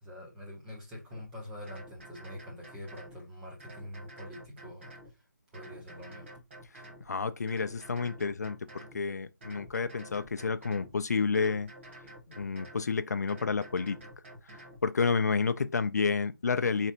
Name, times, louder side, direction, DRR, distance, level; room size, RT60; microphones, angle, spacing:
voice 1, 0.0-5.2 5.5-6.3, left 1 dB, 5° right, 0.5 m, -45 dB
sound 1, 1.1-1.3 1.7-3.2 3.6-5.1 5.5-7.1 7.5-9.0 9.4-10.9 11.3-12.9 13.3-14.8, right 1 dB, 35° right, 1.3 m, -49 dB
voice 2, 7.1-8.6 8.9-11.7 12.4-14.0 14.8-16.9, left 5 dB, 55° left, 0.4 m, -30 dB
3.9 x 3.4 x 2.8 m
figure-of-eight pair, 170°, 10 cm